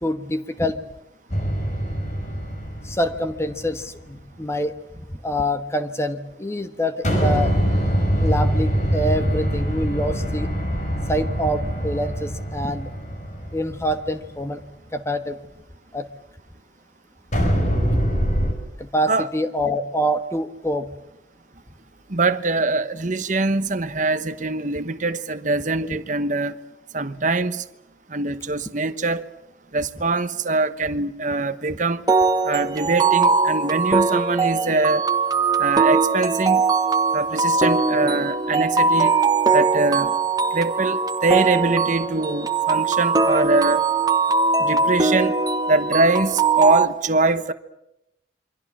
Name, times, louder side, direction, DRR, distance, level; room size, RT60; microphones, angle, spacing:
voice 1, 0.0-0.8 2.8-4.8 5.1-7.5 8.2-10.5 11.1-12.9 13.5-14.6 14.9-15.4 15.9-16.1 18.8-20.9 31.7-31.8, equal, 15° left, 1.3 m, -25 dB
sound 1, 1.3-3.8 7.0-14.3 17.3-18.5, equal, 40° left, 6.0 m, -23 dB
voice 2, 22.1-26.6 26.9-27.6 28.1-29.3 29.7-32.0 32.4-35.0 35.6-36.6 37.1-39.1 39.5-40.2 40.5-43.8 44.6-45.4 45.7-47.5, right 3 dB, 40° right, 1.1 m, -23 dB
sound 2, 32.1-46.9, right 4 dB, 20° right, 1.3 m, -20 dB
28.0 x 24.0 x 7.4 m
head